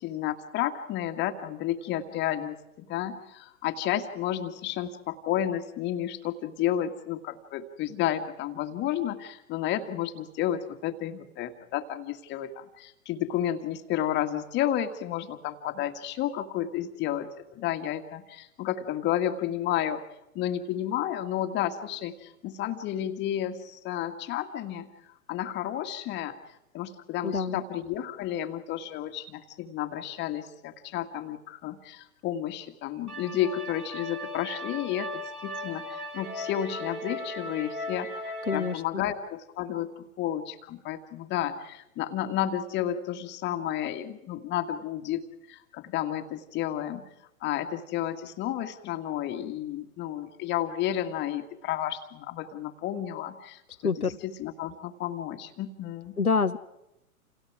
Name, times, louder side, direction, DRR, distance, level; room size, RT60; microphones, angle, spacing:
voice 1, 0.0-20.0 20.3-24.9 25.3-26.4 26.7-38.1 38.5-47.0 47.4-53.9 54.2-56.2, left 11 dB, 25° left, 6 dB, 2.0 m, -31 dB
voice 2, 27.2-27.6 38.5-39.0 53.8-54.2 56.2-56.6, left 5 dB, 85° left, 8 dB, 1.2 m, -27 dB
sound 1, 33.1-38.7, left 1 dB, 85° right, 3.7 m, -37 dB
30.0 x 28.5 x 4.9 m, 0.89 s
figure-of-eight pair, 110°, 43 cm